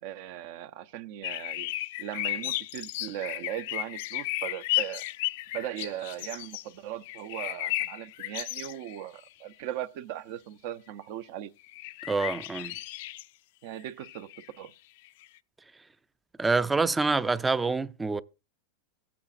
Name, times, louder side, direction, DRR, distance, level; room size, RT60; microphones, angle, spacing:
voice 1, 0.0-1.7 2.0-5.1 5.5-11.5 13.6-14.7, right 12 dB, 60° right, 0.6 m, -38 dB
sound 1, 1.2-6.6 7.0-9.0 9.3-9.4 11.6-13.2 13.8-14.5 15.1-15.2, left 17 dB, 65° left, 0.4 m, -34 dB
voice 2, 12.1-12.8 16.4-18.2, right 3 dB, 10° right, 0.4 m, -26 dB
15.5 x 8.5 x 2.5 m
hypercardioid pair, 120°, 0 cm